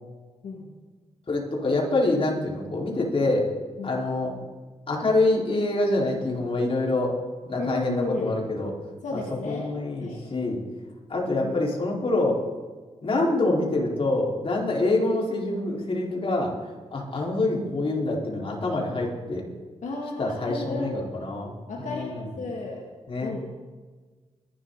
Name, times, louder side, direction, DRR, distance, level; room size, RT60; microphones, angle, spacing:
voice 1, 1.3-3.5 3.8-4.4 4.9-7.1 7.4-8.7 9.1-10.6 11.1-12.4 13.0-16.5 16.9-19.5 20.2-21.5 21.8-22.3 23.1-23.3, left 2 dB, 50° left, -2 dB, 4.6 m, -26 dB
voice 2, 7.6-8.3 9.0-9.7 10.0-10.2 11.4-11.6 19.8-21.1 21.7-22.8 23.2-23.4, left 3 dB, 85° left, -2 dB, 2.3 m, -33 dB
24.0 x 12.0 x 4.1 m, 1.4 s
cardioid pair, 75°, 12 cm